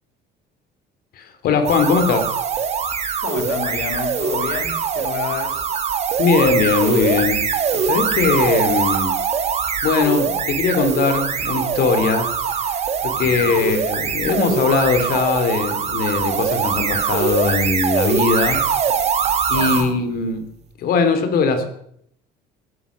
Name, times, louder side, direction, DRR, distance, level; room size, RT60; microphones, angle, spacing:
voice 1, 1.2-2.3 6.2-7.5 7.8-9.1 9.8-12.3 12.7-18.6 19.5-20.4 20.8-21.7, left 4 dB, 55° left, 9 dB, 3.0 m, -20 dB
sound 1, 1.6-19.9, right 6 dB, 35° right, 2.1 m, -22 dB
voice 2, 3.2-5.7 13.2-13.7 19.5-19.9, left 7 dB, 80° left, 6 dB, 3.3 m, -30 dB
20.0 x 11.0 x 6.2 m, 0.69 s
cardioid pair, 145°, 18 cm